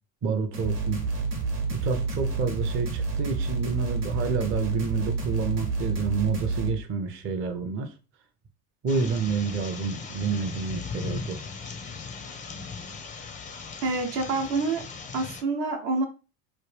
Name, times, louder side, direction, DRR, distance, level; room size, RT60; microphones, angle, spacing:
voice 1, 0.2-1.0 1.7-7.9 8.8-11.4, right 5 dB, 30° right, 0.5 m, -29 dB
sound 1, 0.5-6.7, right 4 dB, 85° right, 1.2 m, -29 dB
sound 2, 8.9-15.4, left 5 dB, 20° left, 0.4 m, -38 dB
voice 2, 13.8-14.8 15.1-16.1, right 3 dB, 65° right, 0.9 m, -27 dB
3.2 x 2.2 x 3.2 m
hypercardioid pair, 80°, 46 cm